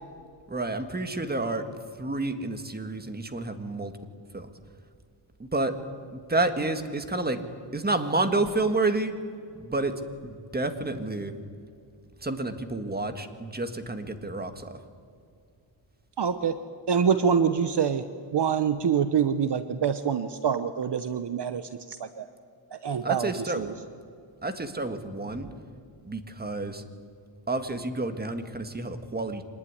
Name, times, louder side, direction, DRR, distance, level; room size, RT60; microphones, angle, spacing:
voice 1, 0.5-1.6 2.0-3.9 4.3-4.5 5.4-5.7 6.1-7.4 7.7-9.1 9.6-9.9 10.2-11.3 12.2-14.8 23.0-23.7 24.4-25.5 26.0-26.8 27.5-29.4, right 2 dB, 20° right, 8 dB, 1.7 m, -29 dB
voice 2, 16.2-16.6 16.9-18.0 18.3-21.6 21.9-22.3 22.7-23.3 23.6-23.7, right 7 dB, 55° right, 11 dB, 1.0 m, -25 dB
25.5 x 20.0 x 9.8 m, 2.4 s
wide cardioid pair, 145°, 48 cm